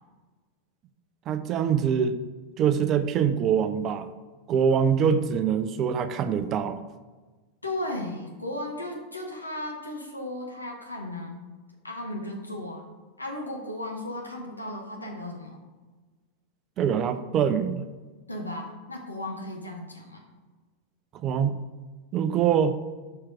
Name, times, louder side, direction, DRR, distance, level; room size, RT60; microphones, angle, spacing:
voice 1, 1.3-2.2 2.6-4.1 4.5-6.8 16.8-17.9 21.1-21.6 22.1-22.8, right 7 dB, 30° right, 10 dB, 0.5 m, -24 dB
voice 2, 7.6-11.4 11.8-12.9 13.2-15.6 18.3-20.2, left 1 dB, 85° left, 0 dB, 1.2 m, -35 dB
5.8 x 4.5 x 4.7 m, 1.3 s
figure-of-eight pair, 90°, 0 cm